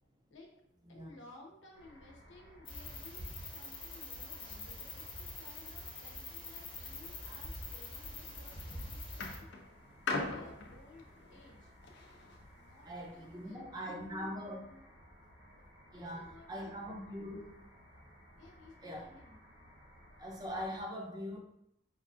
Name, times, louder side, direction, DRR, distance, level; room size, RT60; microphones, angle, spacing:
voice 1, 0.9-9.5 10.2-11.7 12.6-14.9 15.8-16.7 18.4-19.4, left 2 dB, 85° left, -1 dB, 0.9 m, -58 dB
sound 1, 1.7-20.8, equal, 85° right, 1.2 m, -59 dB
sound 2, 2.6-9.4, left 2 dB, 25° left, 0.9 m, -45 dB
sound 3, 8.2-8.6 9.2-12.4 13.2-13.3, left 3 dB, 65° left, 0.5 m, -40 dB
voice 2, 12.9-14.6 15.9-17.5 18.8-19.1 20.2-21.4, equal, 20° right, 0 dB, 0.5 m, -42 dB
5.1 x 2.4 x 2.5 m, 0.77 s
head